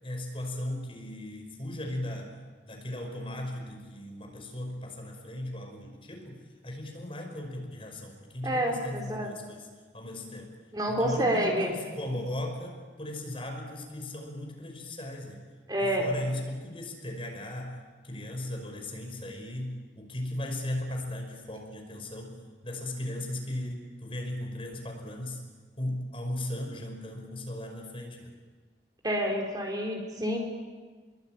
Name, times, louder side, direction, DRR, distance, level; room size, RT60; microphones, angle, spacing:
voice 1, 0.0-2.4 2.7-9.7 9.9-10.5 10.9-15.4 15.8-25.4 25.8-28.3, left 1 dB, 30° left, 2 dB, 5.4 m, -37 dB
voice 2, 8.4-9.3 10.7-11.7 15.7-16.1 29.0-30.4, equal, 20° right, 1 dB, 4.0 m, -28 dB
29.0 x 22.5 x 9.0 m, 1.4 s
head